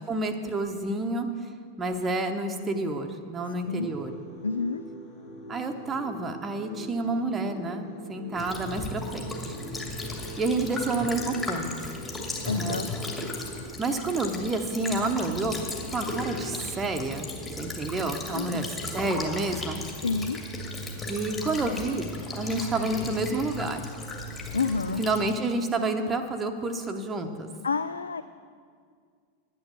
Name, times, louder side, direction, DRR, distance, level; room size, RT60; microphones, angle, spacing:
voice 1, 0.1-1.3 1.8-4.1 5.5-9.6 10.4-11.9 12.6-12.8 13.8-15.6 15.9-17.3 17.6-19.8 21.1-23.9 25.0-27.5, right 2 dB, 20° right, 4 dB, 1.0 m, -29 dB
sound 1, 3.6-13.5, right 1 dB, 50° left, 3.8 m, -44 dB
voice 2, 4.4-4.8 12.5-12.9 18.3-18.7 20.0-20.4 24.5-25.0 27.6-28.2, left 4 dB, 75° left, 12 dB, 0.3 m, -28 dB
Child speech kid speaking / Bird vocalization bird call bird song / Stream, 8.3-25.3, left 2 dB, 20° left, 2.2 m, -36 dB
10.5 x 9.2 x 6.8 m, 2.1 s
figure-of-eight pair, 90°, 0 cm